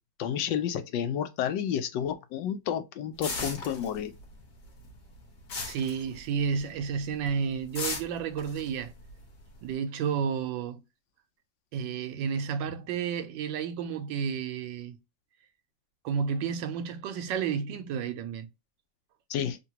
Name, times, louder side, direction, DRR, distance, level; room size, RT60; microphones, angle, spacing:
voice 1, 0.2-4.1 19.3-19.6, left 9 dB, 75° left, 1.3 m, -30 dB
sound 1, 3.2-4.4 4.6-6.7 7.0-7.3 7.8-9.7, left 3 dB, 60° left, 1.7 m, -36 dB
voice 2, 5.7-8.9 9.6-10.8 11.7-15.0 16.0-18.5, right 7 dB, 75° right, 1.2 m, -31 dB
3.8 x 2.2 x 2.7 m
omnidirectional pair, 2.1 m